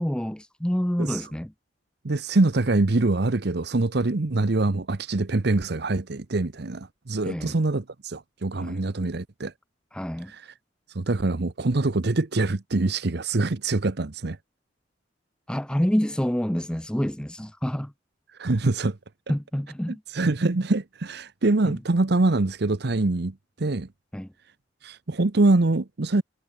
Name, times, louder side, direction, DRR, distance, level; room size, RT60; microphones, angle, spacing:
voice 1, 0.0-1.5 7.2-7.6 8.6-8.8 9.9-10.3 15.5-17.9 19.3-20.0 21.7-21.8 24.1-24.3, equal, 5° left, 0.6 m, -27 dB
voice 2, 2.0-9.5 10.9-14.4 18.4-19.0 20.1-23.9 24.8-26.2, right 2 dB, 65° right, 0.9 m, -24 dB
head